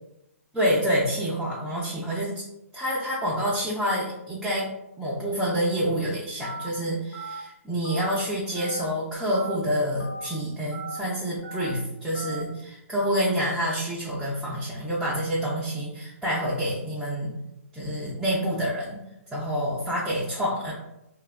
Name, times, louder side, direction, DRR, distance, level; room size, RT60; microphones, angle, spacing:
voice 1, 0.5-2.4 2.7-4.7 5.0-17.3 17.7-19.0 19.3-20.7, equal, ahead, -9 dB, 0.4 m, -27 dB
Telephone, 6.4-6.7 7.1-7.4 7.8-8.1 8.6-8.8 9.3-9.6 10.0-10.3 10.7-11.0 11.4-11.7 12.1-12.4, right 2 dB, 50° left, 0.8 m, -37 dB
2.7 x 2.2 x 2.4 m, 0.86 s
hypercardioid pair, 150°, 8 cm